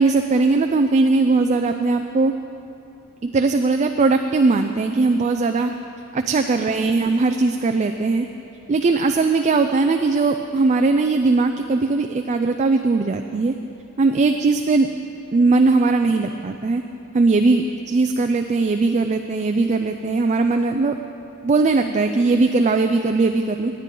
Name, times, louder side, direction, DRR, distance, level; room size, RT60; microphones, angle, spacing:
voice 1, 0.0-2.3 3.3-5.7 6.1-8.3 8.7-13.5 14.0-14.9 15.3-16.8 17.1-20.9 21.4-23.7, right 3 dB, 35° right, 6 dB, 0.4 m, -19 dB
17.5 x 9.5 x 3.8 m, 2.7 s
head